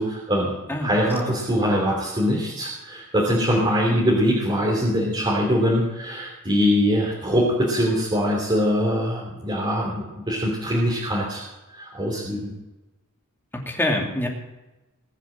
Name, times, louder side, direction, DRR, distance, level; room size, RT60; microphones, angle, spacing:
voice 1, 0.0-0.5 0.8-11.4 11.7-12.5, equal, 20° right, -4 dB, 3.1 m, -23 dB
voice 2, 13.5-14.3, left 1 dB, 10° left, 0 dB, 2.6 m, -25 dB
20.5 x 7.4 x 7.4 m, 1.1 s
head